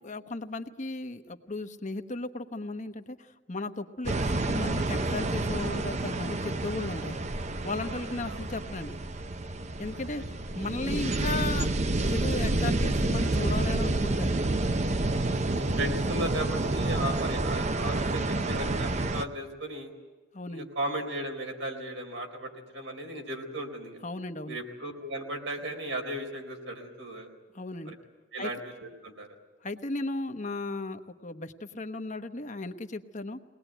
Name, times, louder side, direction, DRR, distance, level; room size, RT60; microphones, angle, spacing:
voice 1, 0.0-7.3 7.6-9.0 9.8-10.2 10.6-11.7 12.0-14.5 20.3-20.7 24.0-24.6 27.5-27.9 28.4-28.5 29.6-33.4, left 2 dB, 40° left, 8 dB, 1.1 m, -35 dB
sound 1, 4.0-19.2, right 2 dB, 40° right, 0.8 m, -29 dB
voice 2, 7.8-8.5 9.9-10.0 15.1-19.9 20.5-24.0 24.5-27.3 27.9-28.0 28.3-29.4, right 1 dB, 80° right, 3 dB, 4.1 m, -36 dB
22.5 x 19.5 x 9.2 m, 1.3 s
head